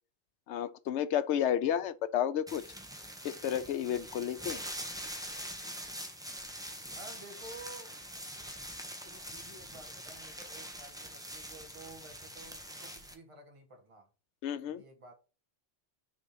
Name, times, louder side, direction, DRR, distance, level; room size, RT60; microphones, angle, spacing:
voice 1, 0.5-2.6 3.2-4.6 14.4-14.8, left 10 dB, 80° left, 0.9 m, -31 dB
sound 1, 2.5-13.1, equal, 5° right, 0.9 m, -44 dB
voice 2, 6.9-8.1 9.0-14.1 14.6-15.1, right 2 dB, 30° right, 1.4 m, -52 dB
6.4 x 3.8 x 5.5 m
omnidirectional pair, 1.2 m